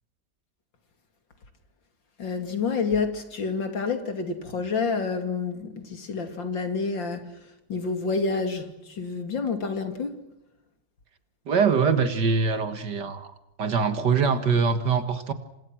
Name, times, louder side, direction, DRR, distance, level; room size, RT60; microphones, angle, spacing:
voice 1, 2.2-7.3 7.7-10.1, left 4 dB, 75° left, 3.4 m, -28 dB
voice 2, 11.5-13.3 13.6-15.3, right 5 dB, 65° right, 2.3 m, -23 dB
28.5 x 26.0 x 6.2 m
omnidirectional pair, 2.1 m